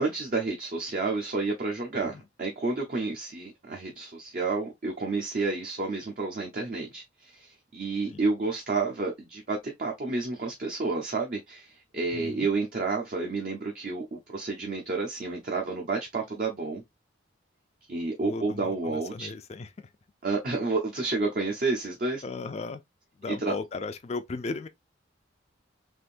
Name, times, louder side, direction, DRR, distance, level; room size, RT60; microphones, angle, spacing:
voice 1, 0.0-16.8 17.9-19.3 20.2-22.2 23.3-23.5, right 3 dB, 45° right, 0.7 m, -30 dB
voice 2, 12.1-12.5 18.2-19.9 22.2-22.8 23.2-24.7, left 3 dB, 35° left, 0.4 m, -36 dB
3.5 x 2.6 x 2.5 m
head